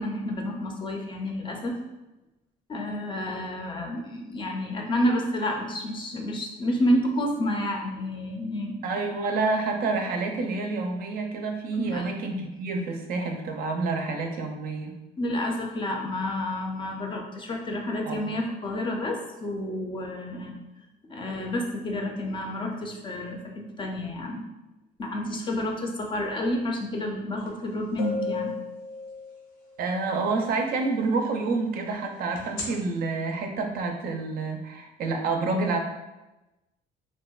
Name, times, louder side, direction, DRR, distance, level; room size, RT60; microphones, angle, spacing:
voice 1, 0.0-1.7 2.7-8.8 11.7-12.1 15.2-20.6 21.1-24.4 25.0-28.5, left 1 dB, 30° left, 1 dB, 0.4 m, -29 dB
voice 2, 8.8-15.0 18.0-18.2 29.8-35.8, right 3 dB, 60° right, 3 dB, 0.4 m, -28 dB
sound 1, 27.5-27.6 28.0-29.7 32.4-32.6, left 3 dB, 85° left, 0.6 m, -33 dB
2.7 x 2.1 x 2.2 m, 1.0 s
cardioid pair, 110°, 17 cm